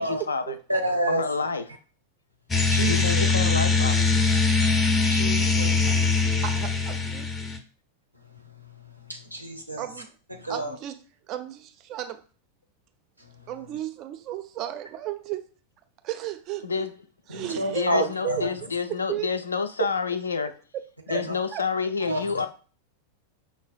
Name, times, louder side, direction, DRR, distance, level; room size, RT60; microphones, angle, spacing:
voice 1, 0.0-0.6 1.1-1.7 2.9-4.1 16.6-16.9 17.7-20.5 21.1-22.5, left 5 dB, 75° left, 0.3 m, -28 dB
voice 2, 0.7-1.2 2.7-3.3 5.1-6.0 9.1-9.8 10.4-10.8 17.3-18.5 21.1-21.3 22.0-22.5, right 1 dB, 90° right, 0.6 m, -29 dB
sound 1, 2.5-7.6, left 4 dB, 15° left, 0.5 m, -22 dB
voice 3, 6.4-7.3 9.8-10.1 10.5-11.0 11.3-12.2 13.5-15.4 16.0-16.9 17.3-17.9 18.2-19.3 21.1-21.2 21.5-21.7 22.0-22.1, right 13 dB, 40° right, 0.4 m, -34 dB
5.5 x 2.2 x 2.4 m
figure-of-eight pair, 90°, 0 cm